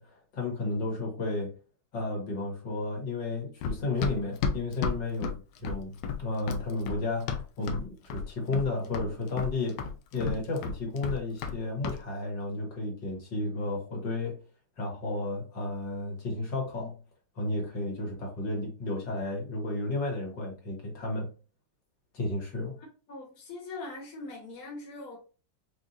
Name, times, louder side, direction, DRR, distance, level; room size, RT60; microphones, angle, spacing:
voice 1, 0.0-1.5 1.9-5.3 5.6-5.9 6.2-14.4 14.8-17.0 17.4-21.3 22.1-22.8, left 2 dB, 70° left, 2.1 m, -32 dB
Run, 3.6-7.8 8.1-8.7 8.9-11.6 11.8-12.0, left 5 dB, 90° left, 1.3 m, -32 dB
voice 2, 23.1-25.2, left 3 dB, 55° left, 1.5 m, -41 dB
4.9 x 2.6 x 2.8 m
omnidirectional pair, 2.0 m